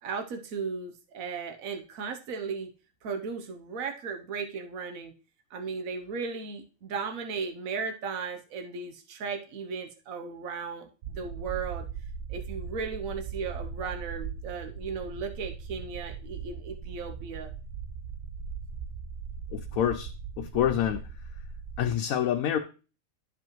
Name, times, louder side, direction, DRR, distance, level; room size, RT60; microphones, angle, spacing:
voice 1, 0.0-2.7 3.0-5.1 5.5-11.9 12.3-17.5, right 5 dB, 85° right, 5 dB, 1.2 m, -36 dB
sound 1, 11.0-22.0, right 6 dB, 65° right, 0.7 m, -39 dB
voice 2, 19.5-20.1 20.4-21.0 21.8-22.6, left 10 dB, 90° left, 5 dB, 1.1 m, -27 dB
11.5 x 5.0 x 3.0 m, 0.35 s
omnidirectional pair, 1.4 m